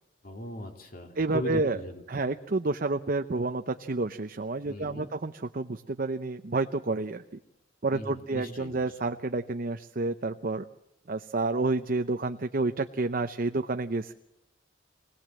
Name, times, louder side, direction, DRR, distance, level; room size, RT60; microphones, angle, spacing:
voice 1, 0.2-2.0 4.7-5.1 7.9-8.7, left 1 dB, 50° left, 4 dB, 2.8 m, -38 dB
voice 2, 1.2-1.8 2.1-7.2 7.8-10.7 11.1-14.1, right 3 dB, 50° right, 8 dB, 0.7 m, -29 dB
24.0 x 18.5 x 7.6 m, 0.88 s
head